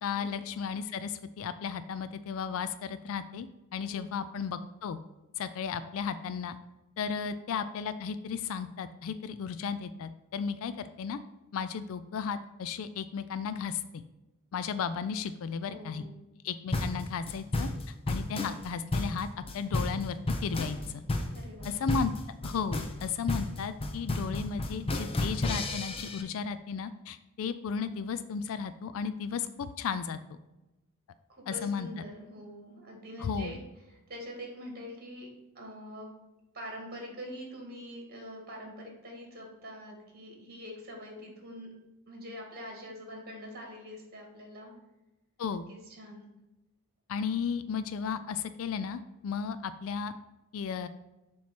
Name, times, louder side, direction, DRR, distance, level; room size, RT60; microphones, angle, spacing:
voice 1, 0.0-5.0 5.4-6.6 7.0-11.2 11.5-14.0 14.5-16.1 16.4-19.3 19.5-21.0 21.6-22.1 22.4-30.2 31.5-31.9 33.2-33.6 45.4-45.7 47.1-50.1 50.5-50.9, left 6 dB, 65° left, 12 dB, 0.3 m, -34 dB
voice 2, 3.9-4.2 7.2-7.5 15.7-16.1 21.3-21.7 31.3-33.6 33.9-35.3 35.6-36.1 36.5-41.7 42.1-44.7 45.7-46.2, equal, 45° right, 1 dB, 1.9 m, -44 dB
sound 1, 16.7-26.2, left 2 dB, 25° left, 0.6 m, -32 dB
7.1 x 3.1 x 5.9 m, 1.0 s
head